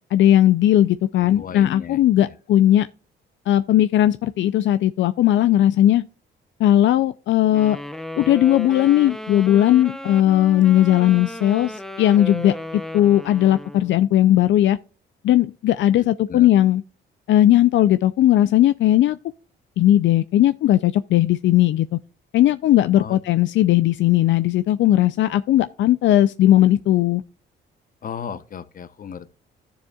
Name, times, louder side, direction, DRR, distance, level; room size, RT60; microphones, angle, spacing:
voice 1, 0.1-2.9 3.5-6.0 6.6-7.8 8.2-14.8 15.2-16.8 17.3-19.2 19.8-22.0 22.3-27.2, left 13 dB, 70° left, 0.4 m, -17 dB
voice 2, 1.2-2.3 16.3-16.5 23.0-23.2 23.6-23.8 28.0-29.3, left 7 dB, 45° left, 0.8 m, -35 dB
Wind instrument woodwind instrument, 7.5-14.0, equal, ahead, 0.7 m, -35 dB
13.0 x 7.1 x 2.3 m
cardioid pair, 90°, 20 cm